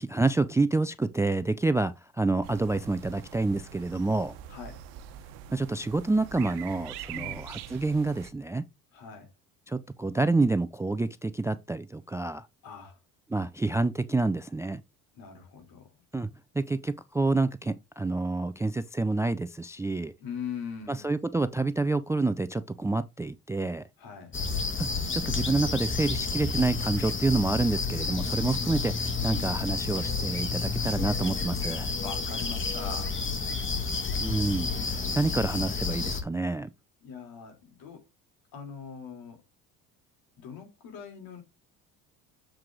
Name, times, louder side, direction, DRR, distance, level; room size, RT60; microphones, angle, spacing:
voice 1, 0.0-4.3 5.5-8.6 9.7-12.4 13.3-14.8 16.1-16.3 16.6-20.1 20.9-23.8 24.8-31.9 34.2-36.7, right 3 dB, 5° right, 0.4 m, -28 dB
sound 1, 2.4-8.3, right 10 dB, 70° right, 1.0 m, -44 dB
voice 2, 4.5-4.8 7.1-7.5 8.9-9.3 12.6-13.0 15.1-16.0 20.2-21.1 24.0-24.3 32.0-33.2 37.0-38.0 38.5-39.4 40.4-41.4, left 6 dB, 65° left, 3.6 m, -41 dB
sound 2, 24.3-36.2, left 4 dB, 30° left, 2.0 m, -30 dB
7.6 x 4.7 x 3.8 m
hypercardioid pair, 75°, 40 cm